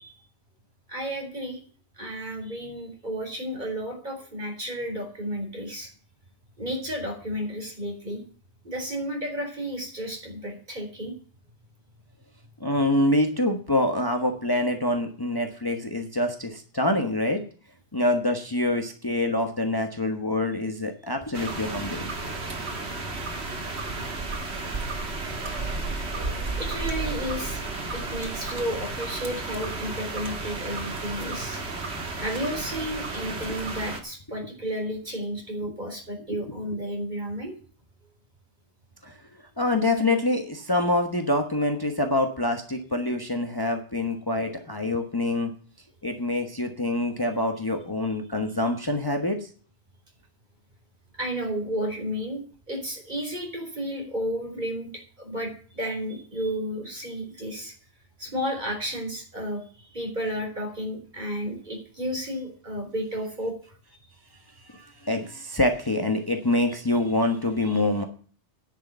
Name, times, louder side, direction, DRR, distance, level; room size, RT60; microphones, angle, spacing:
voice 1, 0.9-1.6 2.0-5.9 6.6-8.2 8.6-11.1 26.5-27.6 27.9-31.6 32.2-37.5 51.2-52.4 52.7-54.9 55.2-57.7 58.2-63.5, equal, 40° right, 1 dB, 4.6 m, -32 dB
voice 2, 12.6-17.4 17.9-22.1 33.5-33.6 34.3-34.5 35.6-35.7 36.2-36.8 39.0-39.2 39.6-45.5 46.0-49.5 64.7-68.0, left 1 dB, 20° left, 5 dB, 1.3 m, -26 dB
sound 1, 21.3-34.0, right 3 dB, 70° right, 2.1 m, -32 dB
10.5 x 6.8 x 9.0 m, 0.42 s
omnidirectional pair, 1.2 m